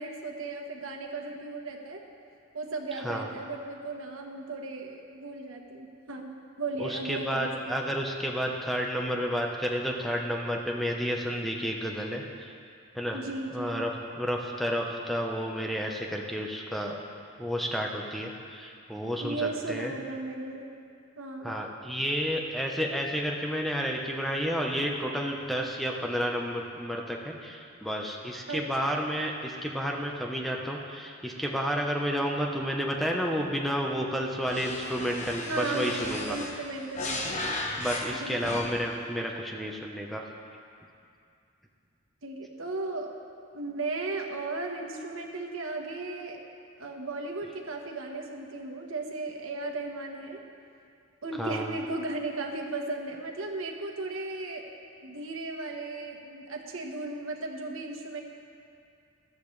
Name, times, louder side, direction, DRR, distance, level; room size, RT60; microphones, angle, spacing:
voice 1, 0.0-2.0 2.5-7.7 13.1-13.8 19.2-20.6 21.2-21.5 28.5-29.0 32.1-32.2 35.5-37.5 38.2-38.5 42.2-43.1 43.5-46.4 46.8-50.4 51.2-54.7 55.0-58.2, right 2 dB, 80° right, 2 dB, 1.3 m, -36 dB
voice 2, 6.8-12.5 12.9-13.2 13.5-17.0 17.4-19.9 21.4-36.4 37.8-40.3 51.4-51.7, equal, ahead, 0 dB, 0.9 m, -31 dB
sound 1, 34.4-39.0, left 2 dB, 35° left, 1.1 m, -35 dB
16.0 x 12.5 x 3.3 m, 2.4 s
head